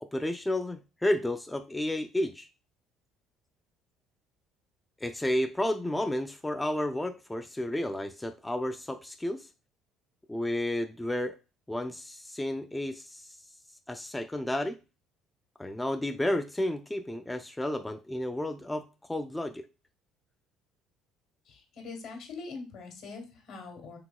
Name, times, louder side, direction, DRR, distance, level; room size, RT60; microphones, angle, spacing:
voice 1, 0.0-2.5 5.0-9.5 10.3-11.4 11.7-13.4 13.9-14.8 15.6-19.7, left 1 dB, 10° left, 7 dB, 0.3 m, -31 dB
voice 2, 21.5-24.0, left 4 dB, 70° left, 3 dB, 1.6 m, -43 dB
4.7 x 3.5 x 2.2 m, 0.30 s
cardioid pair, 100°, 0 cm